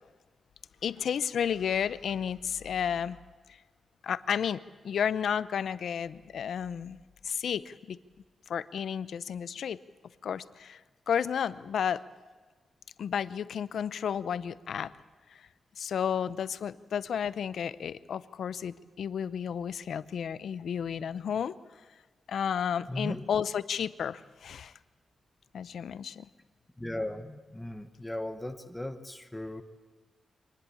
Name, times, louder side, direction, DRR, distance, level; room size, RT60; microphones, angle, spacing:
voice 1, 0.8-3.2 4.0-7.0 7.2-8.0 8.5-9.8 10.2-10.8 11.1-12.0 13.0-14.9 15.8-21.6 22.3-24.7 25.5-26.3, left 8 dB, 65° left, 16 dB, 0.7 m, -32 dB
voice 2, 22.9-23.2 26.8-29.6, left 1 dB, 5° left, 8 dB, 1.1 m, -37 dB
24.5 x 19.5 x 8.7 m, 1.4 s
wide cardioid pair, 180°, 0 cm